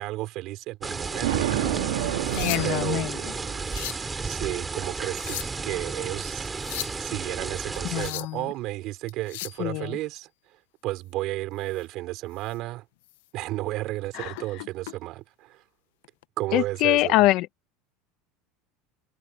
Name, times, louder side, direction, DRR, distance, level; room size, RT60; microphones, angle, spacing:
voice 1, 0.0-1.6 2.6-3.1 3.7-3.9 4.2-6.5 7.0-10.3 10.8-12.9 13.3-15.6 16.4-17.1, right 17 dB, 55° right, 5.2 m, -33 dB
sound 1, 0.8-8.1, right 4 dB, 20° right, 3.4 m, -33 dB
Thunder, 1.2-3.7, right 14 dB, 85° right, 2.1 m, -29 dB
sound 2, 2.0-2.9 3.5-4.1 5.0-5.7 6.5-7.0 7.7-8.4 9.1-9.6 11.7-11.8 12.4-12.6 13.0-13.2 14.3-14.9 16.0-16.2, left 18 dB, 80° left, 0.8 m, -37 dB
voice 2, 2.4-3.1 7.9-8.4 9.6-9.9 14.1-14.3 16.5-17.5, left 18 dB, 60° left, 1.0 m, -24 dB
supercardioid pair, 100°, 0 cm